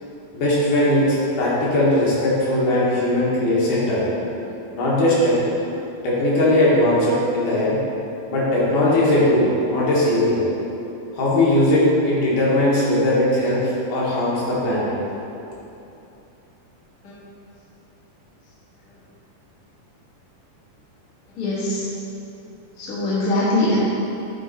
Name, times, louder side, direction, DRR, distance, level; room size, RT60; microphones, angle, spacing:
voice 1, 0.3-4.0 4.7-5.4 6.0-7.8 8.3-10.4 11.1-14.9, left 1 dB, 75° left, -7 dB, 2.8 m, -19 dB
voice 2, 21.3-21.8 22.8-23.8, left 2 dB, 40° left, -9 dB, 1.2 m, -22 dB
9.3 x 3.7 x 4.0 m, 2.9 s
omnidirectional pair, 3.8 m